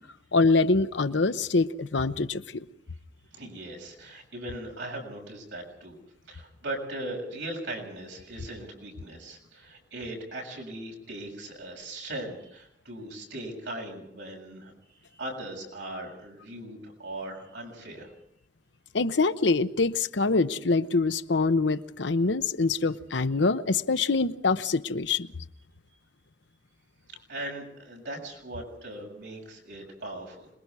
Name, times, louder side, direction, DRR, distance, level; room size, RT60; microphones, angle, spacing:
voice 1, 0.3-2.6 18.9-25.3, left 3 dB, 85° left, 0.9 m, -25 dB
voice 2, 3.3-6.0 6.3-18.2 27.3-30.5, right 1 dB, 80° right, 7.2 m, -39 dB
27.0 x 21.0 x 4.8 m
head